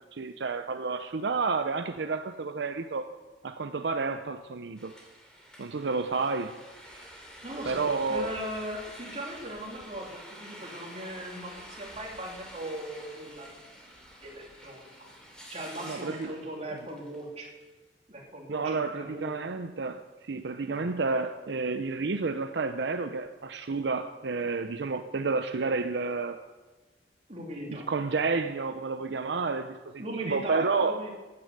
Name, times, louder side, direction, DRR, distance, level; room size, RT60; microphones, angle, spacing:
voice 1, 0.1-3.1 3.4-4.9 5.6-6.6 6.9-7.0 7.6-8.3 15.8-16.3 18.5-26.4 27.7-31.0, right 4 dB, 75° right, 9 dB, 0.6 m, -30 dB
sound 1, 4.8-17.6, equal, 5° left, 3.0 m, -48 dB
voice 2, 7.4-13.5 14.2-14.8 15.5-17.5 18.1-19.3 20.7-20.9 27.3-27.9 30.0-31.1, right 1 dB, 40° right, -1 dB, 3.1 m, -39 dB
15.5 x 9.8 x 6.6 m, 1.2 s
head